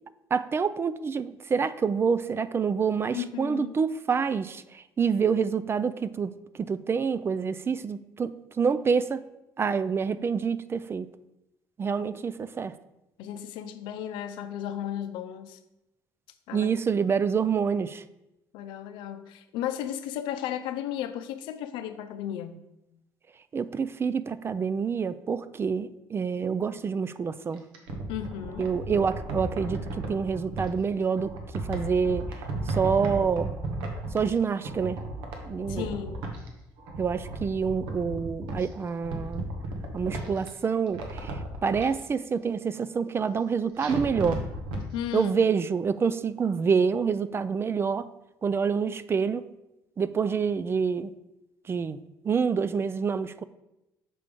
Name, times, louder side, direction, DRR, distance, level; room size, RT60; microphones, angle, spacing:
voice 1, 0.3-6.3 6.6-9.2 9.6-11.1 11.8-12.7 16.5-18.0 23.5-27.6 28.6-31.3 31.7-32.3 32.7-33.5 34.1-35.0 35.5-35.9 37.0-39.5 39.9-44.4 45.1-48.1 48.4-49.5 50.0-51.1 51.7-52.0 52.2-53.4, right 6 dB, 30° right, 14 dB, 0.3 m, -27 dB
voice 2, 3.1-3.8 12.0-12.1 13.2-15.6 16.5-16.7 18.5-22.6 28.1-28.7 35.7-36.3 44.9-45.5, left 10 dB, 80° left, 10 dB, 0.5 m, -34 dB
sound 1, 27.5-30.7 31.2-34.4 34.6-36.5 36.8-38.7 39.0-40.5 40.9-41.9 43.8-44.8 45.2-45.3, right 2 dB, 85° right, 1.2 m, -35 dB
6.8 x 3.5 x 5.2 m, 0.92 s
supercardioid pair, 90°, 8 cm